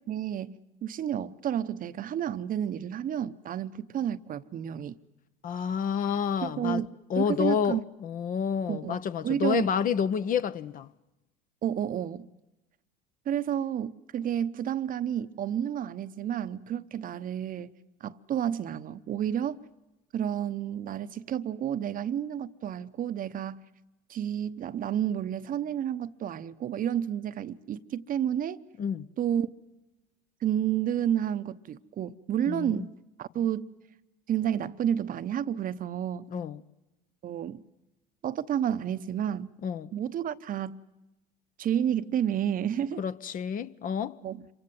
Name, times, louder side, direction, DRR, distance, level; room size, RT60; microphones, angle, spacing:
voice 1, 0.1-4.9 6.4-6.9 7.1-7.8 8.7-9.0 9.2-9.7 11.6-12.3 13.3-17.7 18.0-19.6 20.1-23.6 24.1-28.6 29.2-29.5 30.4-32.9 33.2-33.7 34.3-36.3 37.2-37.6 38.2-39.5 39.9-40.8 41.6-43.0 44.2-44.4, right 10 dB, 40° right, 0.9 m, -30 dB
voice 2, 5.4-6.8 7.1-10.9 28.8-29.1 32.5-32.9 36.3-36.6 39.6-39.9 43.0-44.2, left 7 dB, 40° left, 0.9 m, -29 dB
27.0 x 24.0 x 7.7 m
hypercardioid pair, 75°, 21 cm